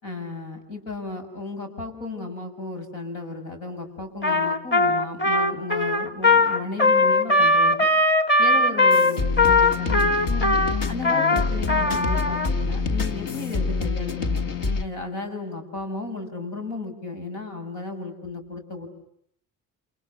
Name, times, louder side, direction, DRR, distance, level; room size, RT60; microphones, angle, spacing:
voice 1, 0.0-7.9 8.4-10.5 10.9-14.5 14.8-18.9, left 2 dB, 85° left, 5 dB, 6.9 m, -34 dB
Trumpet, 4.2-12.5, left 2 dB, 25° left, 2.4 m, -20 dB
sound 1, 8.9-14.8, left 4 dB, 55° left, 1.9 m, -26 dB
29.5 x 28.0 x 7.1 m, 0.71 s
supercardioid pair, 70°, 41 cm